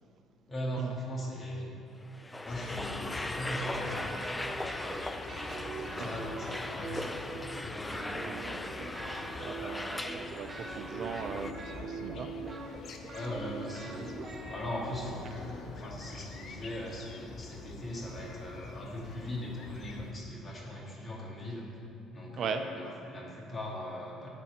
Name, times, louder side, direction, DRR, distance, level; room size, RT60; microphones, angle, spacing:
voice 1, 0.5-1.7 2.4-4.4 5.4-8.1 13.1-21.7 22.1-24.3, left 1 dB, 35° left, -3 dB, 2.4 m, -40 dB
sound 1, 2.0-11.5, left 2 dB, 15° left, 0.4 m, -39 dB
sound 2, 2.5-20.1, left 4 dB, 50° left, 0.7 m, -47 dB
sound 3, 3.5-5.0 5.3-7.6 7.9-15.6, right 3 dB, 35° right, 1.1 m, -43 dB
voice 2, 8.2-9.1 9.4-12.3 22.4-22.6, right 6 dB, 50° right, 7 dB, 0.5 m, -39 dB
9.8 x 4.2 x 7.2 m, 2.6 s
figure-of-eight pair, 55°, 0 cm